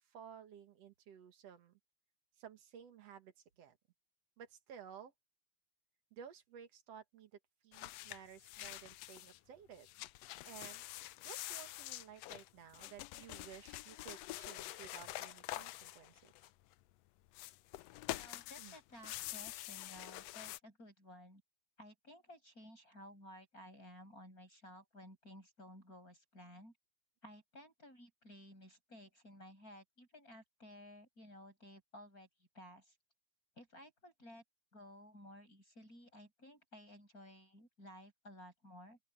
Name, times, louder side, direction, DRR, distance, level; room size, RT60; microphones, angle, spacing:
voice 1, 0.1-1.8 2.4-3.8 4.4-5.1 6.1-7.3 7.6-9.9 10.4-10.8 11.2-16.3 18.6-18.8, right 8 dB, 60° right, 2.5 m, -55 dB
sound 1, 7.7-9.4 9.7-16.7 17.3-20.6, left 17 dB, 80° left, 1.5 m, -47 dB
voice 2, 18.1-21.4 21.8-26.7 27.2-33.0 33.6-34.4 34.7-39.0, left 1 dB, 25° left, 8.5 m, -56 dB
open air
omnidirectional pair, 3.4 m